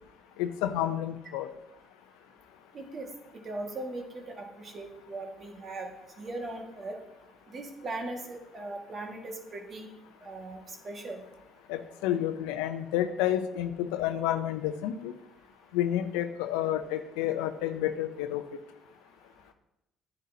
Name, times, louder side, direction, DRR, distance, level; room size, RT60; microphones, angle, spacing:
voice 1, 0.4-1.5 11.7-15.1 15.7-18.4, left 11 dB, 80° left, 9 dB, 0.6 m, -30 dB
voice 2, 2.7-3.1 3.4-5.9 6.2-7.0 7.5-9.9 10.2-11.2, right 2 dB, 45° right, 2 dB, 1.8 m, -39 dB
10.0 x 9.8 x 2.8 m, 0.90 s
hypercardioid pair, 60°, 0 cm